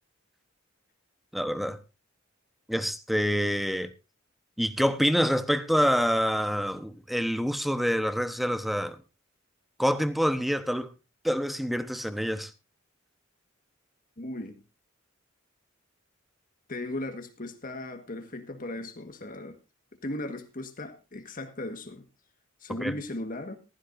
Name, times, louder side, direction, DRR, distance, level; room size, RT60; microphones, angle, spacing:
voice 1, 1.3-1.8 2.7-3.9 4.6-9.0 9.8-10.9 11.2-12.5 22.8-22.9, equal, ahead, 0.9 m, -26 dB
voice 2, 14.2-14.6 16.7-19.6 20.0-22.1 22.6-23.6, left 1 dB, 45° left, 1.5 m, -37 dB
15.0 x 15.0 x 2.6 m
head